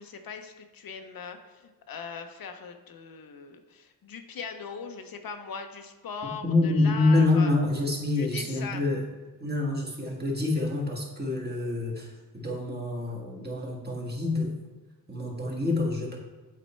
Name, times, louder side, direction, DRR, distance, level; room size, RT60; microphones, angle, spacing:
voice 1, 0.0-7.5 8.1-8.8, left 6 dB, 70° left, 6 dB, 0.7 m, -40 dB
voice 2, 6.4-9.0 9.4-14.5 15.1-16.2, left 2 dB, 25° right, -2 dB, 1.7 m, -26 dB
8.4 x 4.2 x 4.3 m, 1.3 s
wide cardioid pair, 110°, 36 cm